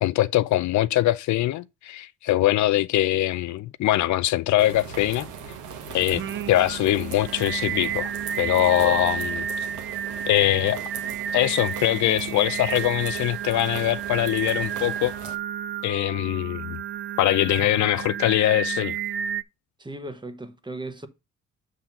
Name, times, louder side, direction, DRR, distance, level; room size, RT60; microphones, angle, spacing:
voice 1, 0.0-5.3 5.9-6.2 6.5-9.5 10.3-10.8 11.3-15.1 15.8-16.8 17.2-19.0, left 14 dB, 70° left, 0.5 m, -22 dB
sound 1, 4.6-15.4, right 7 dB, 90° right, 1.2 m, -39 dB
Singing, 6.1-19.4, right 8 dB, 40° right, 0.4 m, -31 dB
voice 2, 19.8-21.1, right 2 dB, 15° right, 1.1 m, -36 dB
7.2 x 3.7 x 5.8 m
cardioid pair, 90°, 30 cm